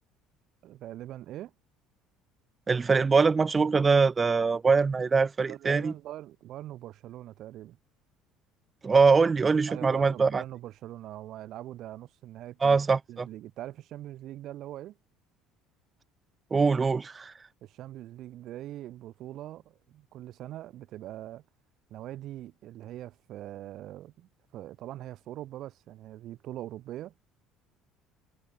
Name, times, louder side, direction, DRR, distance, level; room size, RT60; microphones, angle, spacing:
voice 1, 0.6-1.5 5.5-7.8 9.7-12.8 13.1-15.0 17.6-21.4 21.9-27.3, right 13 dB, 55° right, 2.4 m, -42 dB
voice 2, 2.7-5.9 8.8-10.4 12.6-13.3 16.5-17.3, right 4 dB, 25° right, 0.7 m, -23 dB
hypercardioid pair, 60°, 0 cm